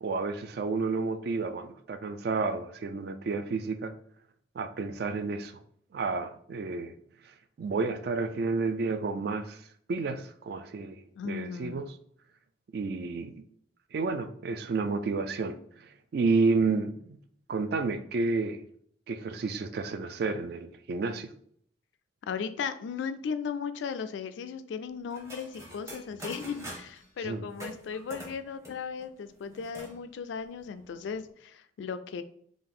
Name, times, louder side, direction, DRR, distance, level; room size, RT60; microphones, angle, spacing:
voice 1, 0.0-4.0 4.6-5.6 5.9-6.9 7.6-9.6 9.9-11.9 12.7-13.3 13.9-17.2 17.5-18.6 19.1-21.3 27.2-27.5, right 4 dB, 55° right, 0.3 m, -31 dB
voice 2, 11.2-11.9 22.2-32.2, left 6 dB, 75° left, 0.3 m, -36 dB
sound 1, 25.1-27.0 27.5-29.9 30.3-30.4 30.6-31.3, right 1 dB, 15° right, 0.7 m, -45 dB
3.6 x 2.5 x 3.7 m
head